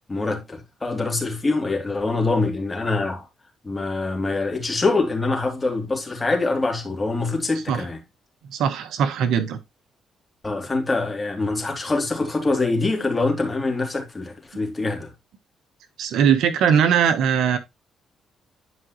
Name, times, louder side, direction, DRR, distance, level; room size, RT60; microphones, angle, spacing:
voice 1, 0.1-3.3 3.6-8.0 10.4-15.1, left 3 dB, 20° left, 3.2 m, -24 dB
voice 2, 8.5-9.6 16.0-17.6, right 8 dB, 80° right, 1.2 m, -20 dB
11.0 x 5.2 x 3.1 m
cardioid pair, 90°, 0 cm